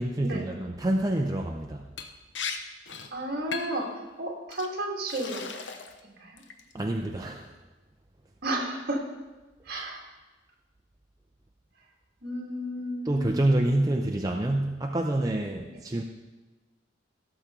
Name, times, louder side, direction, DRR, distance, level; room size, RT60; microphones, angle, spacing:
voice 1, 0.0-1.9 6.7-7.5 9.7-9.8 13.0-16.0, right 1 dB, 20° right, 2 dB, 0.5 m, -27 dB
Liquid, 2.0-2.1 2.3-2.6 2.9-3.1 3.5-3.9 4.5-4.7 5.1-6.0 6.4-6.8, left 5 dB, 70° left, 0.9 m, -36 dB
voice 2, 3.1-3.9 4.2-5.5 6.0-6.4 8.4-9.0 9.7-10.0 12.2-13.4, right 1 dB, 55° right, 0 dB, 2.1 m, -32 dB
17.0 x 6.9 x 3.8 m, 1.2 s
head